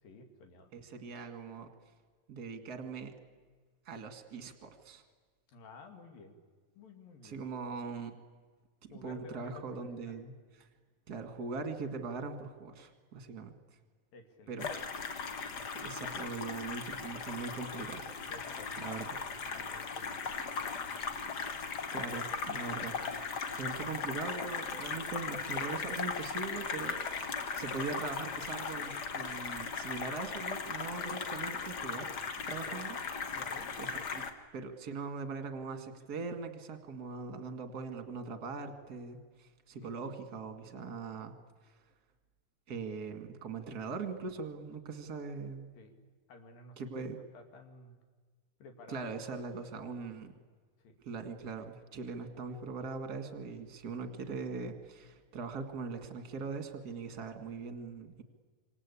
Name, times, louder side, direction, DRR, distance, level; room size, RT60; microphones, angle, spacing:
voice 1, 0.0-0.7 5.5-6.4 6.8-7.4 8.9-10.2 14.1-14.6 18.3-18.7 19.5-20.3 20.6-20.8 33.3-33.7 39.8-40.1 45.8-46.0 46.3-48.0 48.6-49.8 50.8-51.0, left 3 dB, 75° left, 5 dB, 4.0 m, -53 dB
voice 2, 0.7-1.7 2.3-3.1 3.8-5.0 7.2-8.1 8.8-10.3 11.1-13.5 14.5-14.7 15.7-18.1 18.8-19.2 21.9-22.9 23.6-32.1 32.5-33.3 33.8-34.2 34.5-41.3 42.7-45.7 46.8-47.2 48.9-50.3 51.0-58.2, right 4 dB, 35° right, 7 dB, 1.8 m, -41 dB
sound 1, 14.6-34.3, left 5 dB, 90° left, 0.9 m, -38 dB
26.5 x 26.0 x 8.5 m, 1.5 s
omnidirectional pair, 4.2 m